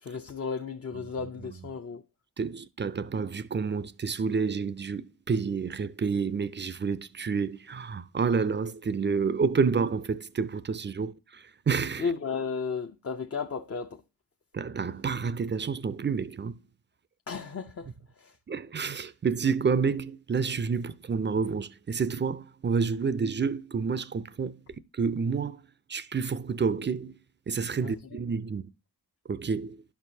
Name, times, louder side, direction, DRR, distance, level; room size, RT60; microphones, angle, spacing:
voice 1, 0.0-2.0 12.0-14.0 17.3-17.9 18.2-18.4 27.8-27.9, left 5 dB, 40° left, 0.6 m, -34 dB
voice 2, 2.4-12.1 14.5-16.6 18.5-24.6 24.9-25.6 25.9-27.2 27.5-28.7 29.3-29.8, right 5 dB, 30° right, 0.4 m, -29 dB
11.0 x 4.6 x 2.7 m
cardioid pair, 50°, 38 cm